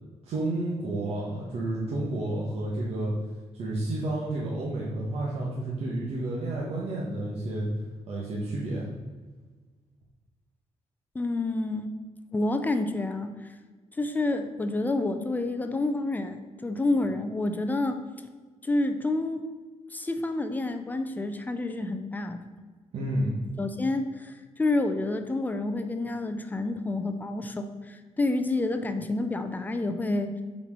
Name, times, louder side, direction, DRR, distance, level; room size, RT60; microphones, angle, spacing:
voice 1, 0.2-3.1 3.6-7.7 8.1-8.9 22.9-23.3, right 1 dB, 60° right, -5 dB, 1.3 m, -30 dB
voice 2, 11.1-12.0 12.3-13.5 14.0-18.0 18.6-19.4 19.9-22.4 23.6-30.4, left 2 dB, 15° left, 7 dB, 0.5 m, -29 dB
6.9 x 4.4 x 6.0 m, 1.4 s
wide cardioid pair, 170°, 12 cm